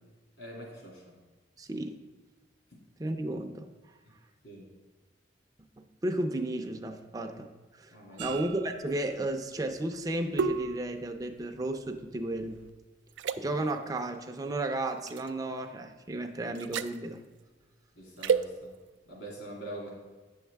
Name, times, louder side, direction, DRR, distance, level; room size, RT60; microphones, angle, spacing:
voice 1, 0.4-1.0 4.4-4.7 7.9-8.2 18.0-18.7 19.1-19.9, right 1 dB, 70° left, -2 dB, 2.5 m, -44 dB
voice 2, 1.6-2.0 3.0-3.7 5.8-7.5 7.8-7.9 8.2-12.6 13.4-17.2, right 1 dB, 20° right, 4 dB, 0.5 m, -33 dB
sound 1, 8.2-12.7 13.1-13.4 15.1-15.3 16.5-17.0 18.2-18.5, right 6 dB, 80° right, 0.4 m, -33 dB
8.7 x 6.4 x 3.4 m, 1.3 s
head